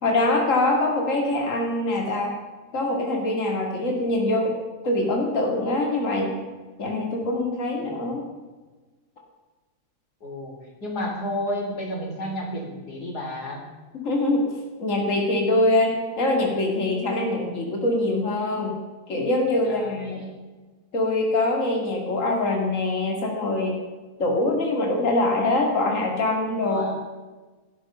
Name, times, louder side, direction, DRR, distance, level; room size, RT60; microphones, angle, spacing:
voice 1, 0.0-2.3 2.7-4.6 4.8-6.3 6.8-8.2 13.9-14.5 14.8-18.8 19.1-20.2 20.9-23.8 24.2-26.9, left 2 dB, 55° left, 1 dB, 2.7 m, -23 dB
voice 2, 10.2-10.6 10.8-13.6 19.6-20.4 26.6-27.0, left 1 dB, 90° left, 1 dB, 4.2 m, -31 dB
16.5 x 14.0 x 5.5 m, 1.3 s
omnidirectional pair, 1.6 m